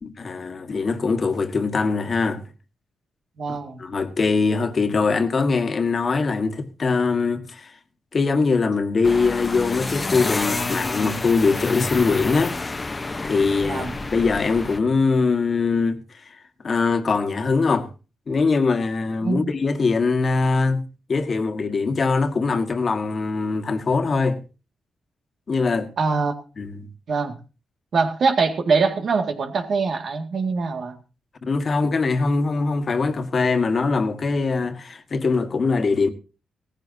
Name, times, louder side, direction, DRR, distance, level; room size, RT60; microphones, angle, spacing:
voice 1, 0.0-2.4 3.5-7.7 8.1-12.5 13.2-16.0 16.6-17.9 18.3-20.8 21.1-24.4 25.5-25.9 26.6-26.9 31.4-36.1, left 4 dB, 45° left, 1.6 m, -22 dB
voice 2, 3.4-3.8 13.6-14.0 19.2-19.5 26.0-26.3 27.1-27.4 27.9-31.0, right 4 dB, 60° right, 2.1 m, -23 dB
sound 1, 9.0-14.8, left 3 dB, 30° left, 1.0 m, -29 dB
17.5 x 14.5 x 2.8 m
cardioid pair, 80°, 0 cm